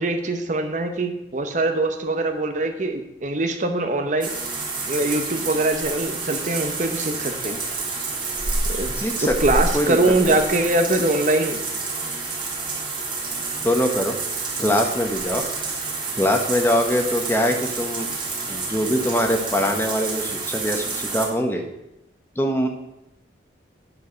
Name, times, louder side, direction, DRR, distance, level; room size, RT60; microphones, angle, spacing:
voice 1, 0.0-4.3 4.9-7.6 8.7-8.9 9.2-11.6, right 2 dB, 40° right, 6 dB, 0.8 m, -23 dB
sound 1, 4.2-21.3, right 3 dB, 25° right, 2.0 m, -29 dB
voice 2, 8.9-10.0 10.2-10.4 13.6-14.2 14.6-15.4 16.2-18.1 18.5-21.6 22.4-22.7, equal, 10° left, 4 dB, 0.9 m, -23 dB
9.8 x 4.8 x 6.2 m, 0.87 s
head